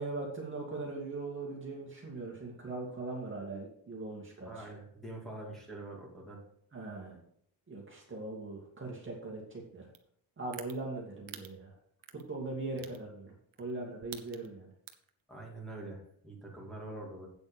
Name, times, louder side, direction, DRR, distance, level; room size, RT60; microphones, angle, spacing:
voice 1, 0.0-4.7 6.7-7.1 7.7-9.9 10.4-11.7 12.1-14.7, right 3 dB, 25° right, -3 dB, 2.4 m, -40 dB
voice 2, 4.4-6.4 15.3-17.3, right 2 dB, ahead, -4 dB, 2.7 m, -45 dB
sound 1, 9.9-10.0 10.5-10.7 11.3-11.5 12.0-12.2 12.8-13.0 13.5-13.7 14.0-14.5 14.9-15.1, right 13 dB, 75° right, 1.2 m, -45 dB
8.5 x 8.2 x 5.2 m, 0.67 s
cardioid pair, 150°, 48 cm